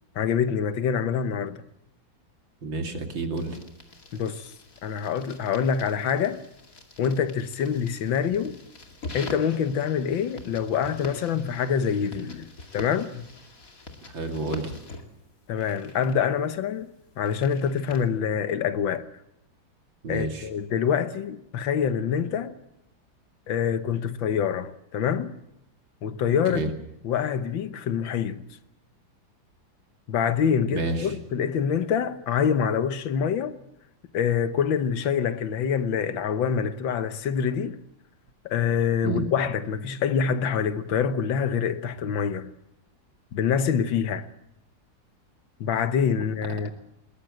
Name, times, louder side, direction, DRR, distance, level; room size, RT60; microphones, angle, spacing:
voice 1, 0.2-1.6 4.1-4.5 4.8-6.4 7.0-8.5 9.1-13.2 15.5-16.9 17.2-19.1 20.1-22.5 23.5-25.3 26.0-26.6 27.0-28.4 30.1-33.6 34.1-37.8 38.5-42.5 43.3-44.3 45.6-46.7, left 7 dB, 85° left, 1.8 m, -26 dB
voice 2, 2.6-3.6 14.1-14.7 20.0-20.5 26.5-26.7 30.6-31.2 39.0-39.2, right 3 dB, 85° right, 3.3 m, -30 dB
sound 1, 3.4-18.0, left 3 dB, 45° left, 2.7 m, -45 dB
21.0 x 19.5 x 7.7 m
omnidirectional pair, 2.0 m